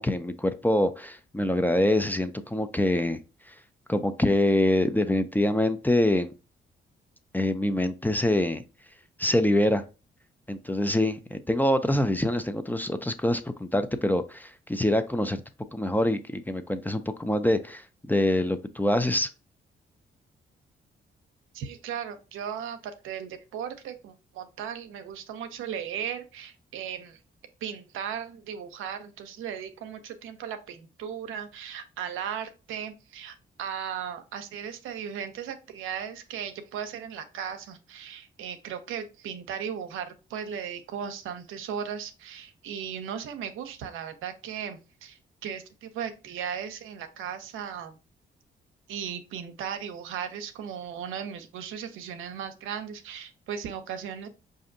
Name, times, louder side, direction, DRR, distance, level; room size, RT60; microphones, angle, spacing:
voice 1, 0.0-3.2 3.5-3.6 3.9-6.3 7.3-8.6 9.2-9.8 10.5-15.4 15.7-19.3, left 1 dB, 10° left, 0.4 m, -25 dB
voice 2, 21.5-27.2 27.6-48.0 48.9-54.3, right 8 dB, 85° right, 0.6 m, -37 dB
4.9 x 2.6 x 2.5 m
supercardioid pair, 60°, 20 cm